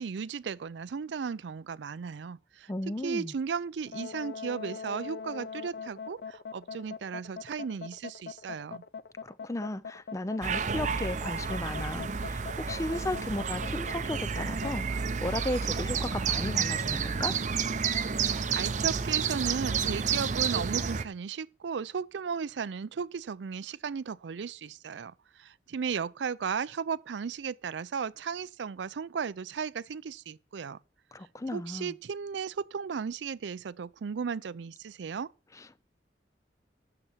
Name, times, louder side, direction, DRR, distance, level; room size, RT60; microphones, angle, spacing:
voice 1, 0.0-8.8 18.2-30.8 31.5-35.3, right 6 dB, 85° right, 0.4 m, -35 dB
voice 2, 2.7-3.3 9.2-17.4 31.1-31.9 35.5-35.9, left 1 dB, 20° left, 0.5 m, -35 dB
sound 1, 3.9-14.7, left 5 dB, 65° left, 0.5 m, -41 dB
sound 2, 10.4-21.0, right 6 dB, 45° right, 0.6 m, -30 dB
9.6 x 6.9 x 7.2 m
head